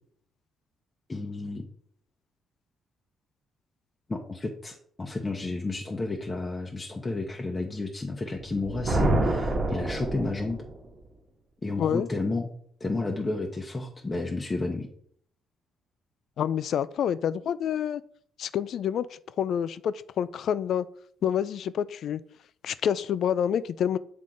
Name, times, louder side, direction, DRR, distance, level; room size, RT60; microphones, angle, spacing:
voice 1, 1.1-1.6 4.1-10.6 11.6-12.5 12.8-14.9, left 3 dB, 25° left, 0 dB, 0.8 m, -31 dB
Thunder, 8.4-10.8, right 1 dB, 40° right, 1.2 m, -27 dB
voice 2, 11.8-12.1 16.4-18.0 18.4-19.1 19.4-20.9 21.2-22.2 22.6-24.0, left 9 dB, 65° left, 16 dB, 0.3 m, -27 dB
7.5 x 3.6 x 3.8 m, 0.62 s
cardioid pair, 90°, 0 cm